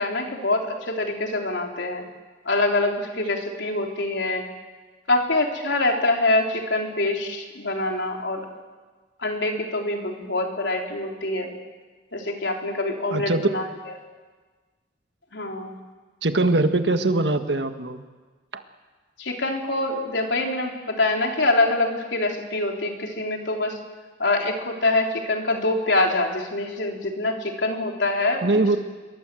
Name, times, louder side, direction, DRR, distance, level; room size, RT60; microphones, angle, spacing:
voice 1, 0.0-2.0 2.5-4.5 5.1-8.5 9.2-11.5 12.1-13.6 15.3-15.7 19.2-23.8 24.2-28.7, left 2 dB, 70° left, 1 dB, 3.8 m, -25 dB
voice 2, 13.1-13.6 16.2-18.0 18.5-18.6 28.4-28.8, right 2 dB, 65° right, 7 dB, 1.6 m, -22 dB
27.0 x 22.5 x 7.8 m, 1.4 s
head